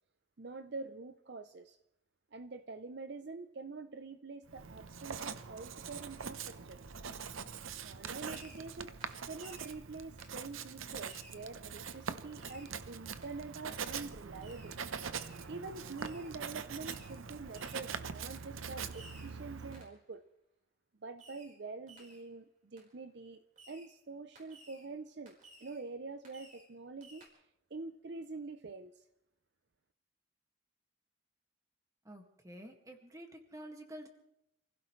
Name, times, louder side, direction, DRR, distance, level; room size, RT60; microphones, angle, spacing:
voice 1, 0.4-1.8 2.3-6.8 7.8-14.8 15.5-20.2 21.0-27.2 27.7-29.0, right 3 dB, 55° right, 10 dB, 0.6 m, -46 dB
Writing, 4.5-19.9, right 6 dB, 80° right, 0.8 m, -43 dB
Fireworks, 8.2-8.7 9.0-9.8 10.2-10.4 11.0-11.5 11.9-12.1 12.4-12.8 13.2-13.3 14.4-14.8 15.1-15.5 16.0-16.3 16.8-17.2 17.5-17.9 18.3-18.5 18.9-19.4 19.7-20.0 21.2-21.6 21.9-22.3 22.8-22.9 23.6-23.9 24.4-24.9 25.3-25.8 26.2-26.7 27.0-27.3, right 1 dB, 40° right, 4.5 m, -57 dB
voice 2, 32.0-34.1, right 1 dB, 15° right, 4 dB, 1.8 m, -49 dB
28.0 x 16.0 x 3.2 m, 0.81 s
head